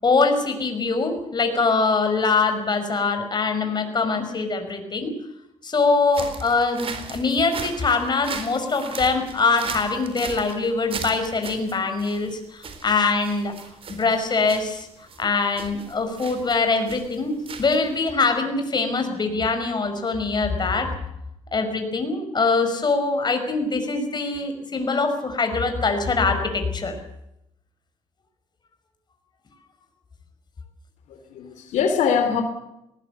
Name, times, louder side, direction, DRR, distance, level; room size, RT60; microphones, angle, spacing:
voice 1, 0.0-5.1 5.6-13.5 13.9-14.9 15.2-17.3 17.6-20.9 21.5-26.9, left 4 dB, 40° left, 6 dB, 5.5 m, -23 dB
sound 1, 6.1-18.1, right 5 dB, 50° right, 4.1 m, -38 dB
voice 2, 31.1-32.4, left 6 dB, 85° left, 7 dB, 2.9 m, -23 dB
19.0 x 19.0 x 8.2 m, 0.83 s
cardioid pair, 85°, 12 cm